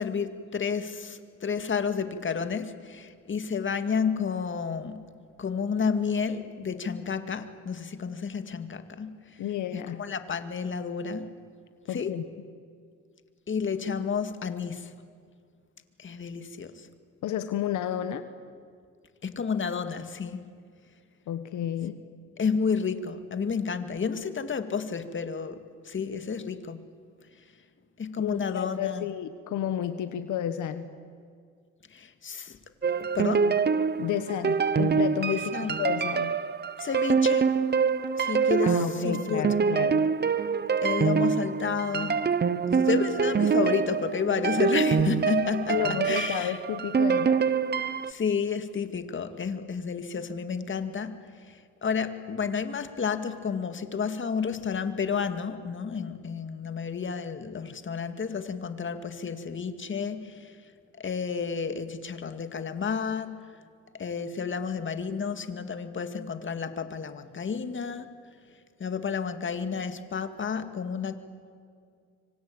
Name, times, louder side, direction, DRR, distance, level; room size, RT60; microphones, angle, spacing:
voice 1, 0.0-5.1 5.4-9.2 9.7-11.3 11.9-12.1 13.5-14.9 16.0-16.9 19.2-20.4 22.4-25.6 25.8-26.8 28.0-29.1 31.9-32.6 33.0-33.5 35.3-35.8 36.8-37.5 38.2-39.5 40.8-42.2 42.7-46.6 48.1-51.2 51.5-60.5 61.0-63.4 63.9-68.1 68.8-71.2, left 6 dB, 40° left, 9 dB, 2.2 m, -31 dB
voice 2, 9.4-10.0 11.9-12.2 17.2-18.2 21.3-22.0 28.2-30.9 34.0-35.5 35.8-36.4 38.6-40.1 45.7-47.4, left 10 dB, 80° left, 11 dB, 1.3 m, -31 dB
sound 1, 32.8-48.1, right 6 dB, 35° right, 1.1 m, -25 dB
25.5 x 25.0 x 8.9 m, 2.2 s
cardioid pair, 90°, 30 cm